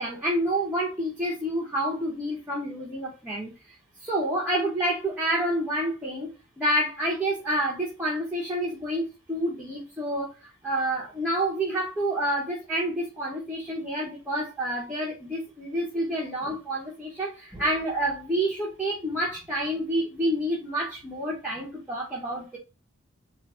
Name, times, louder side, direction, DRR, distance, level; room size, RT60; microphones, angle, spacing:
voice 1, 0.0-22.6, right 1 dB, 5° right, -6 dB, 1.0 m, -28 dB
3.9 x 2.6 x 4.2 m, 0.30 s
head